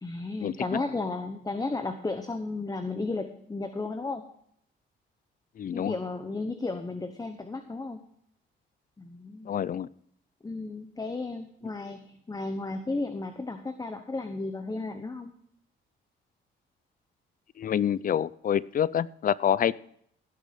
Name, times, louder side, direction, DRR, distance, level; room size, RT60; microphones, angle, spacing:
voice 1, 0.0-4.2 5.7-8.0 9.0-9.6 10.4-15.3, left 3 dB, 20° left, 7 dB, 1.0 m, -34 dB
voice 2, 5.6-6.0 9.5-9.9 17.6-19.7, left 9 dB, 45° left, 20 dB, 0.5 m, -27 dB
17.0 x 6.3 x 5.2 m, 0.66 s
cardioid pair, 90°, 20 cm